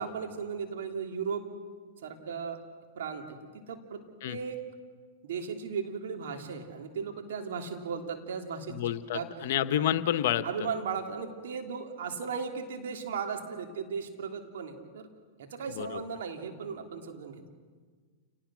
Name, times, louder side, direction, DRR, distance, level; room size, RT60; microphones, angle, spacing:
voice 1, 0.0-1.5 2.0-2.6 2.9-4.6 5.2-9.3 10.4-15.1 15.4-17.4, right 6 dB, 70° right, 4 dB, 3.1 m, -36 dB
voice 2, 8.7-10.4 15.8-16.0, left 11 dB, 65° left, 12 dB, 1.2 m, -29 dB
29.0 x 19.5 x 6.3 m, 1.5 s
hypercardioid pair, 115°, 0 cm